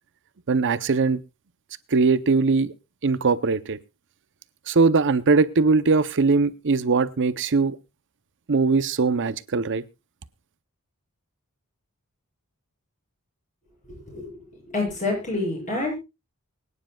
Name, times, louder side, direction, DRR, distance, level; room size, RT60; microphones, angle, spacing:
voice 1, 0.5-1.2 1.9-2.7 3.0-3.8 4.7-7.8 8.5-9.8, right 4 dB, 55° right, 14 dB, 0.7 m, -21 dB
voice 2, 13.9-14.4 14.7-16.0, left 2 dB, 35° left, 0 dB, 7.2 m, -28 dB
24.0 x 9.8 x 2.3 m, 0.25 s
head